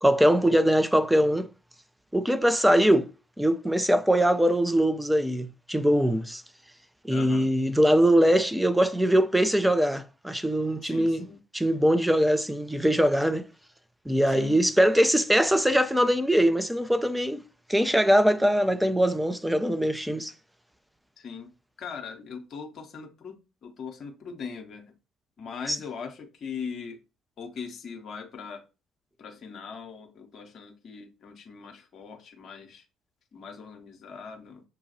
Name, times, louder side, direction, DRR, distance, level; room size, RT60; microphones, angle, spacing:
voice 1, 0.0-1.5 2.1-3.1 3.4-6.4 7.0-11.3 11.5-13.5 14.1-17.4 17.7-20.3, equal, 5° right, 0.5 m, -22 dB
voice 2, 7.1-7.5 10.8-11.4 14.3-14.6 21.2-21.5 21.8-23.4 23.6-24.9 25.4-27.0 27.4-28.6 29.2-32.8 33.3-34.6, left 6 dB, 45° left, 0.8 m, -40 dB
6.5 x 2.3 x 2.7 m
figure-of-eight pair, 50°, 0 cm